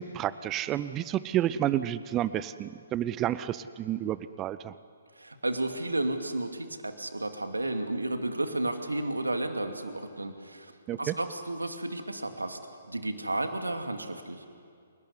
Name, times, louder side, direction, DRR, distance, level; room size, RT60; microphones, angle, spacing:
voice 1, 0.0-4.7 10.9-11.1, right 12 dB, 20° right, 15 dB, 0.6 m, -30 dB
voice 2, 5.2-12.6 12.9-14.4, right 2 dB, 75° right, 6 dB, 2.4 m, -32 dB
28.5 x 19.0 x 9.7 m, 2.2 s
figure-of-eight pair, 125°, 0 cm